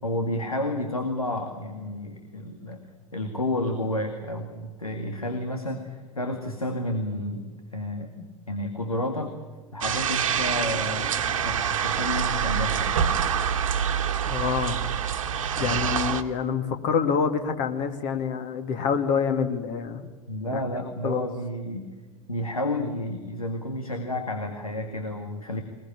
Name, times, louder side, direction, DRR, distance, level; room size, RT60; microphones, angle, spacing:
voice 1, 0.0-2.8 3.1-9.3 9.7-11.1 11.4-12.9 15.6-15.9 20.3-21.9 22.3-25.6, left 1 dB, 85° left, 6 dB, 2.2 m, -31 dB
sound 1, 9.8-16.2, right 8 dB, 70° right, 1.6 m, -26 dB
voice 2, 14.3-14.9 15.6-20.0 20.5-20.6 21.0-21.3, left 6 dB, 45° left, 7 dB, 2.5 m, -26 dB
21.5 x 21.0 x 8.7 m, 1.3 s
figure-of-eight pair, 85°, 18 cm